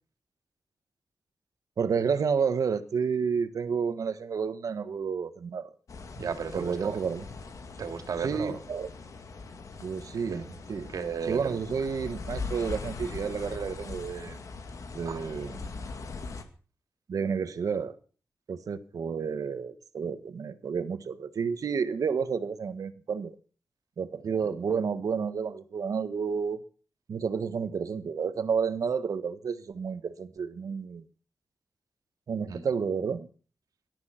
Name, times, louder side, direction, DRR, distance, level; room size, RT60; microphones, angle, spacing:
voice 1, 1.8-5.7 6.5-7.2 8.2-8.9 9.8-10.9 11.3-14.4 14.9-15.7 17.1-17.9 18.5-23.3 24.0-26.6 27.1-31.0 32.3-33.3, right 6 dB, 70° right, 1.4 m, -30 dB
sound 1, 5.9-16.4, left 4 dB, 65° left, 2.1 m, -41 dB
voice 2, 6.2-6.9 7.8-8.6 10.3-10.4 10.9-11.6 15.0-15.3 32.5-32.7, right 6 dB, 90° right, 2.5 m, -35 dB
18.0 x 12.5 x 5.9 m
wide cardioid pair, 160°, 6 cm